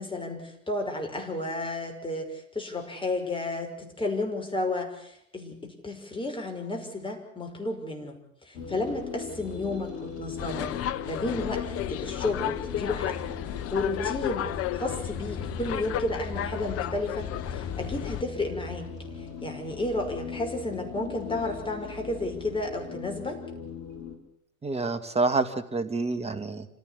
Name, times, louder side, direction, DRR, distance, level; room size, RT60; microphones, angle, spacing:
voice 1, 0.0-10.7 11.0-11.6 11.9-13.4 13.7-18.9 19.4-23.4, left 2 dB, 10° left, 2 dB, 6.0 m, -32 dB
sound 1, 8.5-24.2, left 5 dB, 55° left, 4.8 m, -39 dB
sound 2, 10.4-18.2, left 11 dB, 35° left, 1.0 m, -33 dB
voice 2, 24.6-26.7, right 3 dB, 15° right, 10 dB, 1.9 m, -28 dB
26.5 x 16.0 x 8.5 m, 0.70 s
figure-of-eight pair, 85°, 42 cm